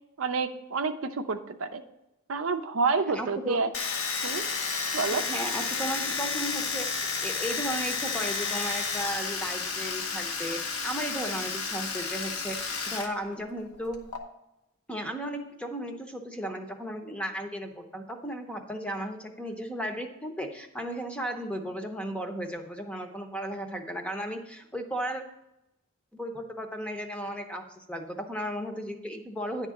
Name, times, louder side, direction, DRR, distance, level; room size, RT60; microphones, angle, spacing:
voice 1, 0.2-1.8 2.3-3.7 4.2-4.4 4.9-5.2, right 4 dB, 65° right, 7 dB, 0.6 m, -28 dB
voice 2, 3.1-3.6 5.1-14.0 14.9-25.2 26.1-29.7, equal, 5° left, 4 dB, 0.7 m, -35 dB
Domestic sounds home sounds, 3.7-13.1 13.3-14.2, left 5 dB, 90° left, 1.1 m, -31 dB
10.0 x 3.7 x 7.0 m, 0.88 s
head